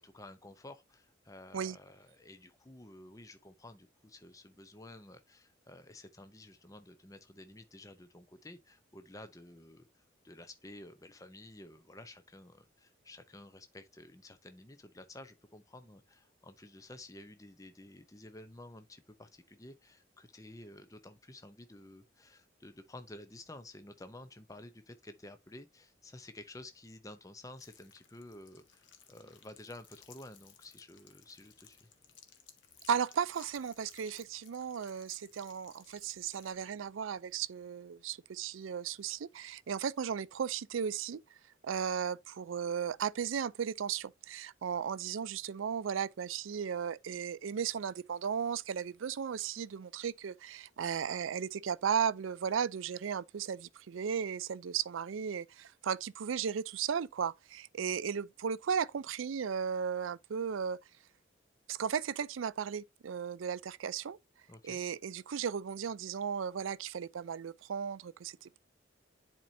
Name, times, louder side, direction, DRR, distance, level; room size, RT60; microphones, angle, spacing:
voice 1, 0.0-31.9 64.5-64.8, left 1 dB, 15° left, 0.6 m, -52 dB
sound 1, 27.6-36.5, left 8 dB, 70° left, 1.2 m, -60 dB
voice 2, 32.9-41.2 41.6-60.8 61.7-64.2 64.6-68.6, right 7 dB, 85° right, 0.4 m, -35 dB
10.0 x 4.4 x 2.6 m
head